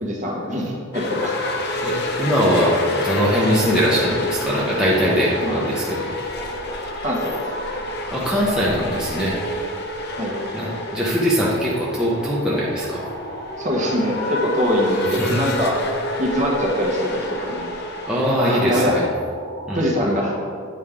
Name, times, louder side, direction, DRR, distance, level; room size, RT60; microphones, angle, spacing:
voice 1, 0.0-1.3 5.4-5.6 7.0-7.5 10.2-10.3 13.6-15.7 16.2-17.1 17.4-17.7 18.4-19.0 19.7-20.4, equal, 35° right, -2 dB, 1.4 m, -23 dB
sound 1, 0.9-18.5, left 2 dB, 50° left, 0.7 m, -29 dB
sound 2, 1.1-19.8, right 2 dB, 85° right, 0.8 m, -38 dB
voice 2, 1.8-6.1 8.1-9.4 10.5-13.0 15.2-15.4 18.1-19.0 19.7-19.8, equal, 5° right, -7 dB, 0.9 m, -21 dB
8.8 x 5.3 x 3.7 m, 2.1 s
head